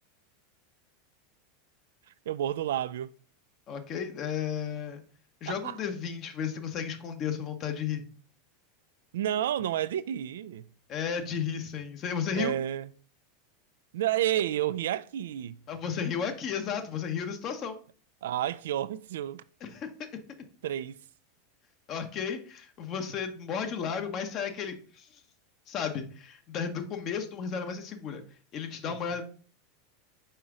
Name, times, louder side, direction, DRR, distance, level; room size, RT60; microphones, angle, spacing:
voice 1, 2.3-3.1 5.5-5.8 9.1-10.7 12.3-12.9 13.9-15.6 18.2-19.4 20.6-21.0 28.9-29.2, right 11 dB, 70° right, 0.3 m, -30 dB
voice 2, 3.7-5.0 5.4-8.1 10.9-12.5 15.7-17.8 19.6-20.2 21.9-25.2 25.7-28.2 28.5-29.2, left 7 dB, 45° left, 1.1 m, -33 dB
5.6 x 4.6 x 3.7 m
hypercardioid pair, 90°, 0 cm